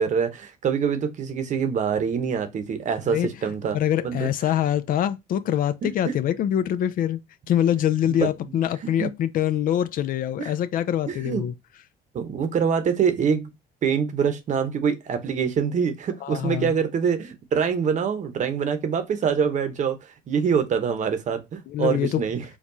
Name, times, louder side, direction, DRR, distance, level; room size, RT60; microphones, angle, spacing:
voice 1, 0.0-4.5 5.8-6.1 8.1-8.3 8.8-9.1 10.4-10.5 11.1-11.5 12.1-13.5 13.8-22.4, right 6 dB, 45° right, 0.8 m, -25 dB
voice 2, 3.7-7.2 7.5-11.5 16.2-16.8 21.7-22.2, left 10 dB, 55° left, 0.4 m, -24 dB
4.5 x 2.3 x 2.6 m
cardioid pair, 110°, 17 cm